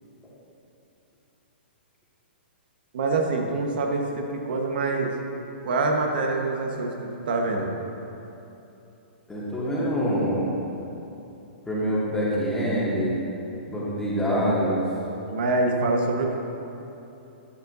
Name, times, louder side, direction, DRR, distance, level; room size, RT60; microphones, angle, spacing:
voice 1, 2.9-5.2 5.6-7.7 15.3-16.4, right 3 dB, 60° right, 2 dB, 1.3 m, -25 dB
voice 2, 9.3-10.6 11.7-13.1 13.7-14.8, equal, 10° left, -8 dB, 2.1 m, -25 dB
11.5 x 9.3 x 2.7 m, 3.0 s
figure-of-eight pair, 115°, 6 cm